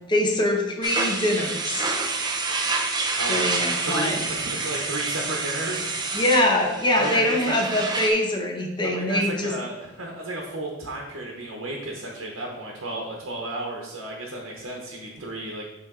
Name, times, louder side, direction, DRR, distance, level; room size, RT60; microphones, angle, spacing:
voice 1, 0.1-1.8 3.3-4.3 6.1-9.5, left 1 dB, 25° left, 0 dB, 0.9 m, -23 dB
sound 1, 0.8-8.1, right 3 dB, 20° right, 0.6 m, -28 dB
voice 2, 3.8-6.0 6.9-7.6 8.8-15.6, right 2 dB, 80° right, -1 dB, 1.0 m, -33 dB
8.3 x 3.1 x 3.7 m, 1.0 s
head